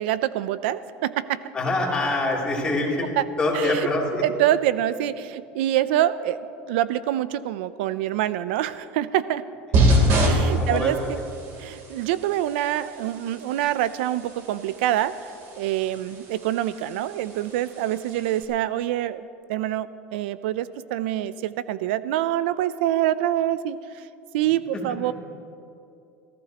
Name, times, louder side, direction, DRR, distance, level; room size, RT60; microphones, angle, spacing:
voice 1, 0.0-1.4 3.2-3.3 3.5-3.9 4.2-9.4 10.2-11.2 11.6-15.1 15.6-23.8 24.3-25.1, right 12 dB, 90° right, 15 dB, 0.5 m, -25 dB
voice 2, 1.5-3.1 3.4-4.2 10.6-10.9 24.7-25.1, left 2 dB, 15° left, -4 dB, 3.0 m, -25 dB
sound 1, 9.7-18.4, right 1 dB, 50° right, 3.2 m, -27 dB
28.0 x 15.0 x 2.9 m, 2.7 s
cardioid pair, 160°, 6 cm